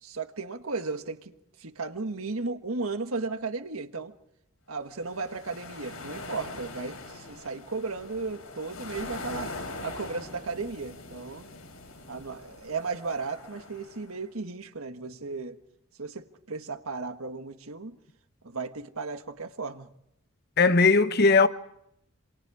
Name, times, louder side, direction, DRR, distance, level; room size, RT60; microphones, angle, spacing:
voice 1, 0.0-4.1 4.7-9.5 9.8-11.5 12.1-15.6 16.0-18.0 18.4-19.9, right 4 dB, 80° right, 1.5 m, -35 dB
sound 1, 4.9-14.2, left 2 dB, 90° left, 7.8 m, -42 dB
voice 2, 20.6-21.5, left 4 dB, 45° left, 1.0 m, -19 dB
28.0 x 27.5 x 4.9 m
head